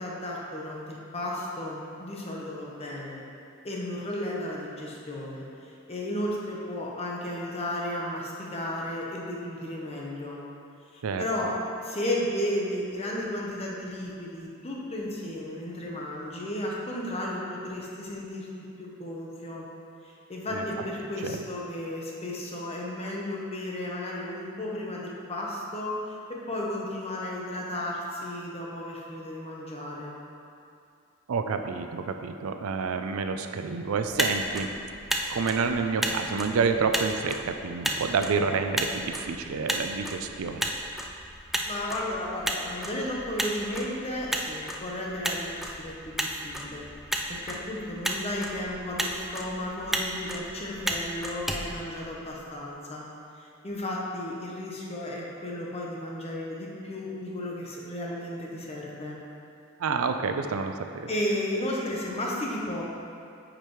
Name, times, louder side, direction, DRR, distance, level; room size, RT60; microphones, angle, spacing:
voice 1, 0.0-3.2 3.6-10.4 10.9-11.5 11.8-18.5 18.8-19.7 20.0-30.1 41.3-46.9 47.3-53.0 53.3-59.2 61.1-62.8, left 1 dB, 30° left, -3 dB, 0.9 m, -34 dB
voice 2, 31.3-34.7 35.3-40.7 59.8-61.1, right 5 dB, 85° right, 7 dB, 0.4 m, -29 dB
Motor vehicle (road), 34.0-52.5, right 1 dB, ahead, 0.3 m, -34 dB
8.7 x 5.1 x 3.1 m, 2.5 s
head